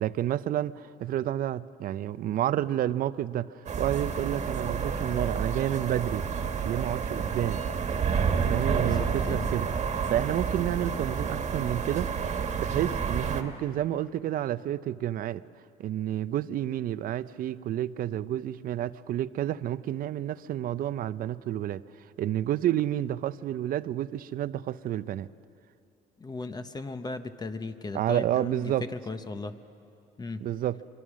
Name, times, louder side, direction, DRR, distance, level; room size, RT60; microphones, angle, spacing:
voice 1, 0.0-6.3 6.6-7.6 8.3-12.1 12.6-15.4 15.8-21.8 22.2-25.3 27.9-28.9 30.4-30.8, right 12 dB, 60° right, 16 dB, 0.5 m, -30 dB
sound 1, 3.7-13.4, right 6 dB, 45° right, 1.7 m, -29 dB
voice 2, 8.8-9.5 13.2-13.4 26.2-29.6 30.2-30.5, left 3 dB, 25° left, 9 dB, 0.9 m, -37 dB
24.0 x 24.0 x 6.3 m, 2.6 s
cardioid pair, 110°, 17 cm